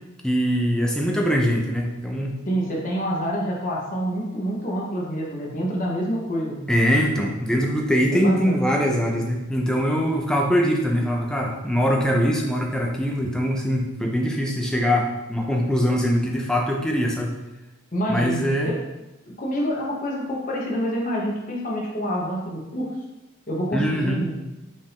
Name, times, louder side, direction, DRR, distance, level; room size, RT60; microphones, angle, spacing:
voice 1, 0.2-2.4 6.7-17.3 18.1-18.7 23.7-24.2, equal, 5° left, 0 dB, 0.5 m, -22 dB
voice 2, 2.5-6.7 8.1-8.6 17.9-18.8 19.4-22.9 23.5-24.4, equal, 40° left, -3 dB, 0.9 m, -27 dB
5.2 x 2.6 x 3.5 m, 0.99 s
head